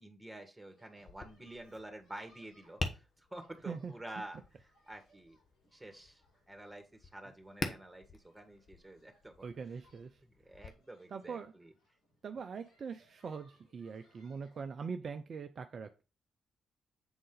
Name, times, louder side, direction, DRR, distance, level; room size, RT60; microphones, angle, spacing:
voice 1, 0.0-3.0 3.3-4.4 4.9-5.4 5.7-6.2 6.5-9.5 10.2-11.7, right 1 dB, 10° right, 5 dB, 2.0 m, -49 dB
sound 1, 0.7-14.6, equal, 70° left, 3.9 m, -71 dB
Tap, 1.0-10.7, left 3 dB, 50° left, 1.1 m, -46 dB
voice 2, 9.4-10.1 11.1-11.5 12.2-16.0, right 5 dB, 55° right, 7 dB, 0.5 m, -42 dB
7.9 x 3.8 x 4.0 m, 0.31 s
hypercardioid pair, 40°, 0 cm